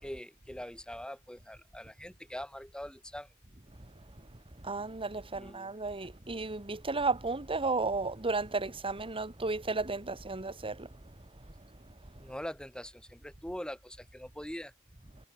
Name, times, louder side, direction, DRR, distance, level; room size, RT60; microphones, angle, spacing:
voice 1, 0.0-3.3 5.3-5.7 12.2-14.7, equal, 5° left, 4.6 m, -43 dB
voice 2, 4.6-10.9, right 3 dB, 25° right, 1.8 m, -33 dB
head